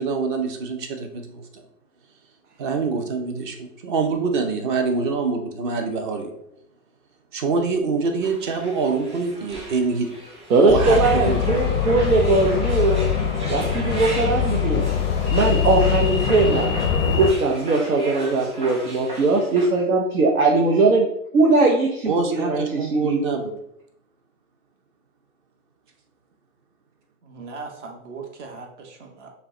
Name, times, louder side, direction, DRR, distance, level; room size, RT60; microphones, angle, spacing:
voice 1, 0.0-1.6 2.6-6.3 7.3-10.1 10.6-11.0 11.2-11.6 22.0-23.5, right 4 dB, 35° right, 5 dB, 0.7 m, -25 dB
sound 1, 8.2-19.7, right 1 dB, 15° right, 1.0 m, -37 dB
voice 2, 10.5-13.1 13.5-14.9 15.3-16.7 17.1-21.1 21.3-23.2, right 3 dB, 85° right, 0 dB, 0.8 m, -20 dB
sound 2, 10.7-17.3, left 7 dB, 20° left, 0.4 m, -23 dB
voice 3, 27.3-29.3, right 4 dB, 55° right, 2 dB, 1.1 m, -38 dB
5.6 x 2.2 x 3.7 m, 0.75 s
hypercardioid pair, 125°, 43 cm